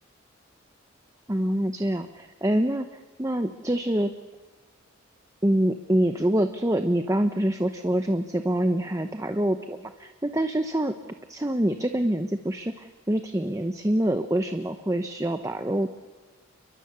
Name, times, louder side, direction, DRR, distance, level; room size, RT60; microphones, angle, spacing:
voice 1, 1.3-2.9 3.2-4.1 5.4-10.9 11.3-15.9, right 1 dB, 15° right, 8 dB, 0.8 m, -25 dB
29.5 x 23.0 x 6.9 m, 1.3 s
head